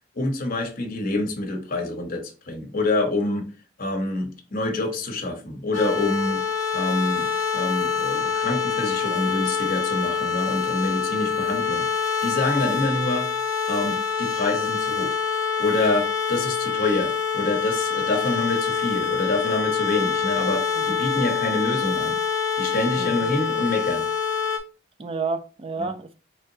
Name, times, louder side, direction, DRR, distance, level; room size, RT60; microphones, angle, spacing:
voice 1, 0.1-3.5 3.8-6.5 6.7-13.3 13.7-15.2 15.6-22.2 22.6-24.1 25.8-25.9, left 2 dB, 50° left, 0.9 m, -26 dB
sound 1, 5.7-24.6, left 6 dB, 90° left, 0.7 m, -25 dB
voice 2, 23.0-23.3 25.0-26.1, right 4 dB, 30° right, 0.4 m, -31 dB
3.8 x 3.4 x 2.7 m
head